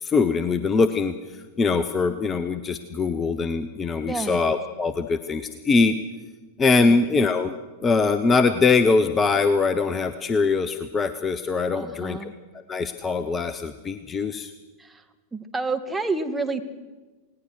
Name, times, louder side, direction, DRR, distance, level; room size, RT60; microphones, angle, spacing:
voice 1, 0.0-1.1 1.6-6.0 6.6-7.5 7.8-12.3 12.7-14.5, left 4 dB, 20° left, 11 dB, 1.0 m, -22 dB
voice 2, 4.1-4.4 11.7-12.3 14.8-15.0 15.3-16.6, right 3 dB, 10° right, 5 dB, 2.0 m, -29 dB
28.5 x 18.5 x 6.5 m, 1.2 s
figure-of-eight pair, 90°, 0 cm